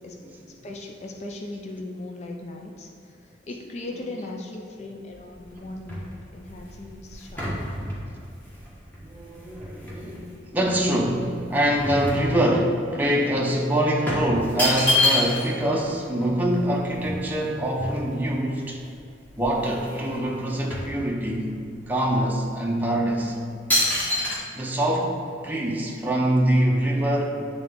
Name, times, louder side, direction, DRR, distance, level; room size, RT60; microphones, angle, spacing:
voice 1, 0.6-7.6, left 2 dB, 35° left, 1 dB, 0.4 m, -38 dB
sound 1, 5.1-10.2 10.7-12.8 13.1-13.3 14.1-15.6 15.9-16.0 16.2-18.4 18.9-19.0 19.3-20.1 20.3-21.6 22.1-22.3 22.9-23.2 23.7-24.4, left 1 dB, 10° left, 1.2 m, -28 dB
voice 2, 9.0-18.8 19.4-21.5 21.9-23.4 24.5-27.4, right 1 dB, 10° right, -2 dB, 0.6 m, -24 dB
8.7 x 3.7 x 3.6 m, 2.5 s
head